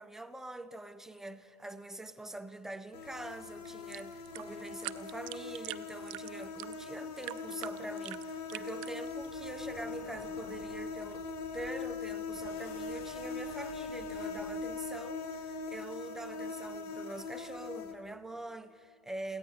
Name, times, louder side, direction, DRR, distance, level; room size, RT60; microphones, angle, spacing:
voice 1, 0.0-11.3 11.5-19.4, right 2 dB, ahead, 0.5 m, -44 dB
sound 1, 2.9-17.9, left 4 dB, 70° left, 1.3 m, -41 dB
sound 2, 3.6-9.3, right 19 dB, 50° right, 0.5 m, -45 dB
sound 3, 9.0-14.8, left 4 dB, 45° left, 4.8 m, -55 dB
21.5 x 16.5 x 3.8 m
hypercardioid pair, 110°, 21 cm